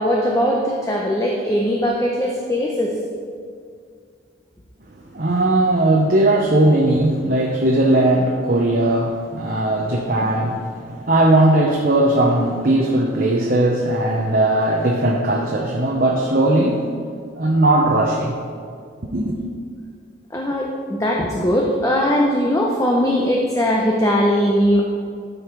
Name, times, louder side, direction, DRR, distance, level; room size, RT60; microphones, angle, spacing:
voice 1, 0.0-3.0 20.3-24.8, equal, 15° left, -1 dB, 0.7 m, -20 dB
voice 2, 5.1-16.8 17.4-18.3 19.1-19.4, right 1 dB, 50° right, -1 dB, 0.9 m, -18 dB
13.0 x 5.4 x 4.6 m, 2.2 s
head